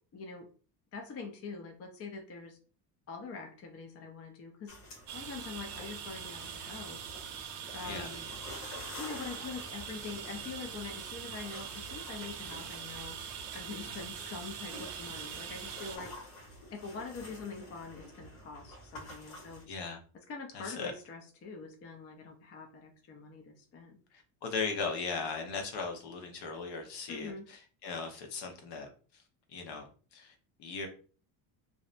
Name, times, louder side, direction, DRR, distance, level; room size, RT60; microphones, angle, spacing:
voice 1, 0.1-0.5 0.9-2.6 3.1-4.8 5.1-7.1 7.7-8.3 9.0-13.2 13.5-16.1 16.7-19.6 20.3-24.0 27.1-27.4, left 4 dB, 30° left, 3 dB, 0.5 m, -44 dB
sound 1, 4.7-19.6, left 1 dB, 75° left, 1.2 m, -49 dB
sound 2, 5.1-16.0, right 7 dB, 60° right, 0.7 m, -43 dB
voice 2, 19.7-20.0 20.5-20.9 24.1-28.9 29.5-29.8 30.1-30.3 30.6-30.9, left 4 dB, 55° left, 3 dB, 0.9 m, -38 dB
2.6 x 2.0 x 2.5 m, 0.39 s
supercardioid pair, 90°, 48 cm